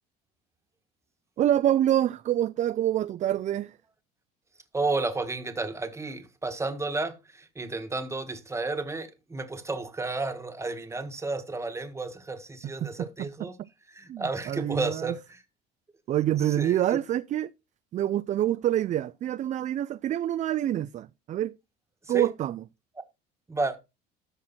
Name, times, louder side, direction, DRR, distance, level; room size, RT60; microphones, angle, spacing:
voice 1, 1.4-3.7 12.8-13.5 14.1-15.1 16.1-17.5 17.9-21.6 22.1-22.6, right 12 dB, 40° right, 0.4 m, -26 dB
voice 2, 4.7-13.5 13.9-15.4 16.5-16.8 22.1-22.3 23.5-23.8, right 3 dB, 15° right, 1.5 m, -32 dB
13.5 x 4.5 x 4.2 m
supercardioid pair, 105°, 20 cm